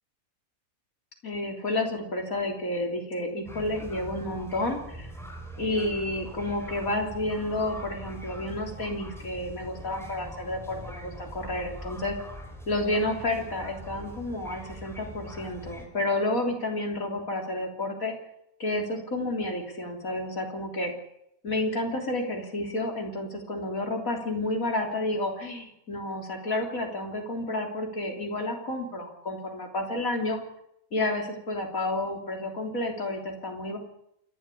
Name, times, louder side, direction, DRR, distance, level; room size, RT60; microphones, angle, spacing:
voice 1, 1.2-5.1 5.6-12.2 12.7-18.1 18.6-20.9 21.4-30.4 30.9-33.8, left 2 dB, 70° left, 1 dB, 3.9 m, -30 dB
sound 1, 3.5-15.9, equal, ahead, 4.5 m, -42 dB
28.0 x 12.0 x 8.4 m, 0.78 s
omnidirectional pair, 1.5 m